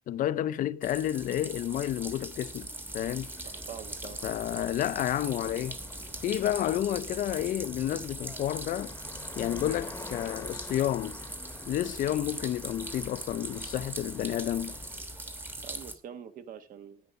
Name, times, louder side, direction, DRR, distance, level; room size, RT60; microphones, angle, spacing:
voice 1, 0.1-2.7 2.9-3.3 4.2-5.8 6.2-8.9 9.4-11.2 11.7-14.8, left 12 dB, 60° left, 0.5 m, -30 dB
sound 1, 0.8-16.0, right 1 dB, 15° right, 1.2 m, -41 dB
sound 2, 3.0-15.0, left 3 dB, 15° left, 1.0 m, -48 dB
voice 2, 3.4-4.2 15.6-17.0, right 8 dB, 60° right, 1.3 m, -45 dB
10.5 x 9.5 x 5.3 m
cardioid pair, 170°, 16 cm